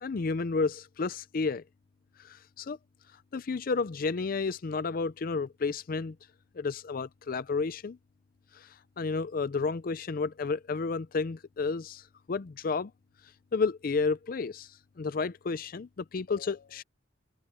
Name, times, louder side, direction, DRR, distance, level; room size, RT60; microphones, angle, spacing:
voice 1, 0.0-1.6 2.2-2.8 3.3-6.1 6.6-8.0 8.5-8.7 9.0-12.9 13.5-14.7 15.0-16.8, left 4 dB, 50° left, 0.5 m, -31 dB
head